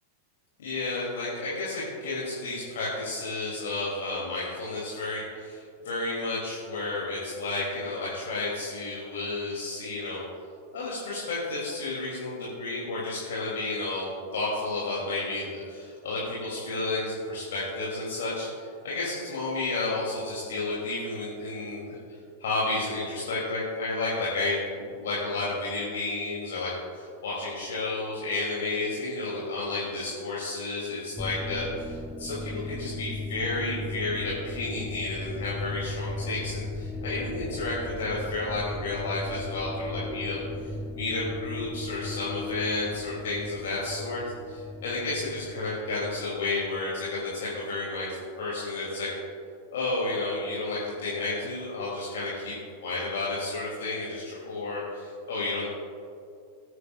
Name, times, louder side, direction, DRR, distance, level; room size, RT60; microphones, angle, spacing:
voice 1, 0.6-10.2 10.7-22.0 22.4-48.1 48.4-49.1 49.7-52.5 52.8-55.6, left 2 dB, 60° left, -6 dB, 2.6 m, -31 dB
sound 1, 31.2-47.1, left 2 dB, 5° left, 0.4 m, -37 dB
19.5 x 9.6 x 2.4 m, 2.4 s
figure-of-eight pair, 90°, 0 cm